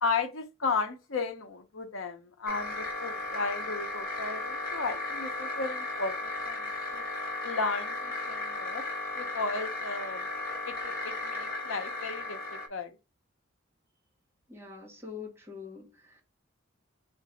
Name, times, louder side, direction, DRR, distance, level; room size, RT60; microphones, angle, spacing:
voice 1, 0.0-7.0 7.4-8.8 9.2-10.3 10.6-12.9, left 4 dB, 70° left, 0.8 m, -34 dB
sound 1, 2.5-12.7, left 2 dB, 45° left, 1.1 m, -35 dB
voice 2, 14.5-16.2, left 5 dB, 15° right, 1.8 m, -44 dB
3.9 x 2.6 x 3.8 m
head